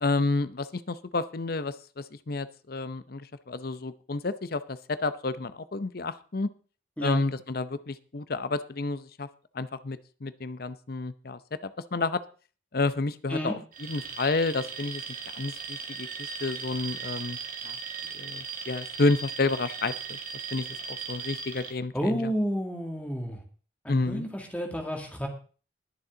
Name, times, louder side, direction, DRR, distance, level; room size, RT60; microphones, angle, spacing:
voice 1, 0.0-6.5 7.0-9.3 9.5-12.2 12.7-15.0 15.4-17.4 17.6-17.8 18.1-20.2 20.5-22.3 23.9-24.3, left 3 dB, 55° left, 14 dB, 0.7 m, -30 dB
Alarm, 13.7-21.7, right 6 dB, 45° right, 1.9 m, -38 dB
voice 2, 21.9-23.4 23.8-25.3, equal, 10° left, 2 dB, 2.4 m, -30 dB
21.0 x 7.2 x 3.9 m, 0.38 s
head